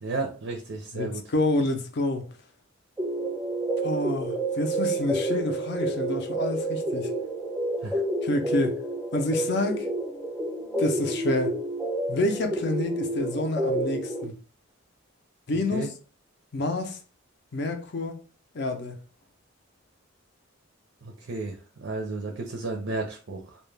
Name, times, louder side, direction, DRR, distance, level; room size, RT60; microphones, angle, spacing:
voice 1, 0.0-1.2 7.8-8.0 15.5-15.9 21.0-23.6, right 3 dB, 65° right, 0.5 m, -33 dB
voice 2, 0.9-2.3 3.8-7.1 8.2-8.8 9.1-9.9 10.8-11.6 12.1-14.3 15.5-15.9 16.5-17.0 17.5-18.2 18.5-19.0, left 2 dB, 55° left, 0.4 m, -28 dB
sound 1, 3.0-14.2, right 2 dB, 5° right, 0.4 m, -29 dB
2.2 x 2.1 x 3.1 m
head